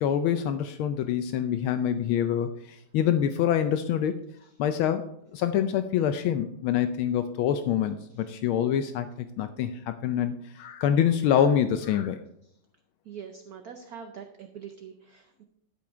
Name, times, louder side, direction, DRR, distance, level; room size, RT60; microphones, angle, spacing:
voice 1, 0.0-4.2 4.6-5.0 5.3-9.1 9.4-12.2, left 9 dB, 80° left, 9 dB, 1.4 m, -26 dB
voice 2, 13.0-15.4, right 7 dB, 70° right, 6 dB, 0.8 m, -44 dB
12.0 x 5.5 x 4.4 m, 0.75 s
omnidirectional pair, 2.4 m